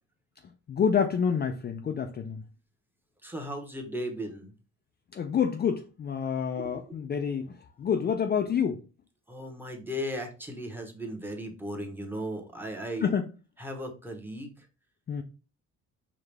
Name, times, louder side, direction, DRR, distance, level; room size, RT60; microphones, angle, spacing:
voice 1, 0.7-2.4 5.1-8.8 13.0-13.3 15.1-15.2, left 7 dB, 35° left, 0.4 m, -28 dB
voice 2, 3.2-4.5 6.6-7.0 9.3-13.1 13.6-14.7, equal, 5° right, 1.0 m, -36 dB
4.7 x 2.4 x 3.3 m
cardioid pair, 90°, 30 cm